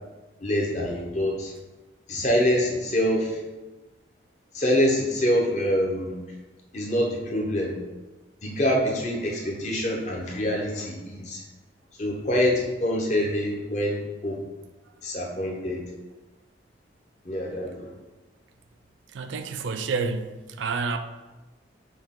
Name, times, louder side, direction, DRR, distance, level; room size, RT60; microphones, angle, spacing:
voice 1, 0.4-1.5 2.1-3.4 4.5-6.2 6.7-7.8 8.4-11.4 12.0-14.4 15.0-15.8 17.2-17.9, equal, 40° left, 0.8 m, -25 dB
voice 2, 19.1-21.0, right 4 dB, 90° right, 0.4 m, -29 dB
6.1 x 2.4 x 3.6 m
head